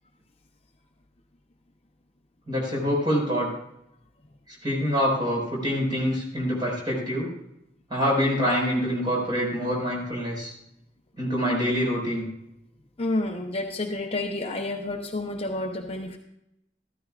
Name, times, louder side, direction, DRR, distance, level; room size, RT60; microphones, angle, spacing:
voice 1, 2.5-3.5 4.6-7.3 7.9-10.5 11.2-12.3, equal, 25° right, -3 dB, 5.2 m, -25 dB
voice 2, 13.0-16.2, left 2 dB, 35° left, 3 dB, 0.8 m, -29 dB
14.5 x 13.0 x 2.5 m, 0.80 s
head